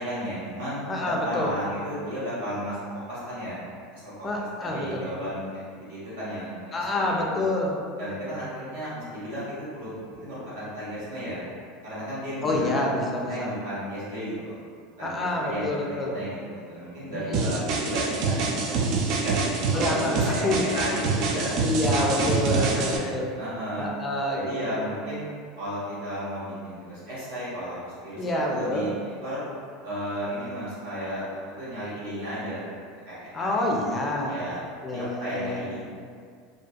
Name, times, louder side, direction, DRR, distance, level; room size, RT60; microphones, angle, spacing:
voice 1, 0.0-3.6 3.9-4.3 4.6-5.4 5.7-7.5 8.0-9.9 10.2-11.4 11.8-12.9 13.3-14.6 15.0-18.7 19.0-19.3 19.7-23.9 24.3-25.2 25.6-28.9 29.2-29.4 29.8-32.6 33.1-33.6 34.2-34.6 34.9-35.8, equal, 80° right, -10 dB, 1.1 m, -34 dB
voice 2, 0.9-1.5 4.2-5.0 6.7-7.8 12.4-13.5 15.0-16.2 17.1-17.6 19.7-20.7 21.6-23.3 23.8-24.4 28.2-28.9 33.3-34.4 34.8-35.8, left 1 dB, 25° left, -1 dB, 0.4 m, -27 dB
sound 1, 17.3-23.0, right 4 dB, 55° right, 0.3 m, -26 dB
2.5 x 2.2 x 2.3 m, 2.1 s
hypercardioid pair, 85°, 0 cm